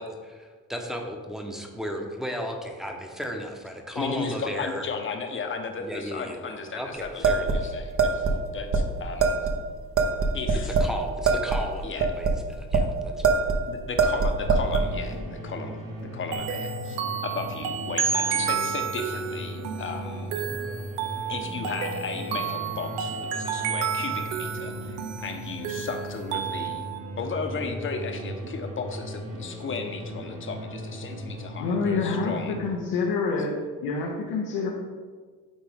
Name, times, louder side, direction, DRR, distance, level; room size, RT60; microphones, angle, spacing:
voice 1, 0.0-4.8 5.8-7.7 10.6-13.3, equal, ahead, 2 dB, 1.0 m, -35 dB
voice 2, 3.9-9.4 10.3-10.8 11.8-12.1 13.7-20.5 21.3-26.8 27.2-32.6, left 5 dB, 35° left, 4 dB, 0.9 m, -35 dB
sound 1, 7.2-8.4 8.7-8.8 9.2-9.5 10.0-10.9 11.2-12.9 13.2-13.6 14.0-14.9, right 4 dB, 40° right, 0.9 m, -22 dB
sound 2, 14.4-32.7, right 1 dB, 65° right, 1.6 m, -38 dB
sound 3, 16.3-27.0, right 7 dB, 90° right, 0.7 m, -31 dB
voice 3, 31.6-33.5 33.8-34.7, left 4 dB, 85° left, -2 dB, 1.0 m, -27 dB
8.9 x 3.7 x 3.5 m, 1.5 s
supercardioid pair, 80°, 34 cm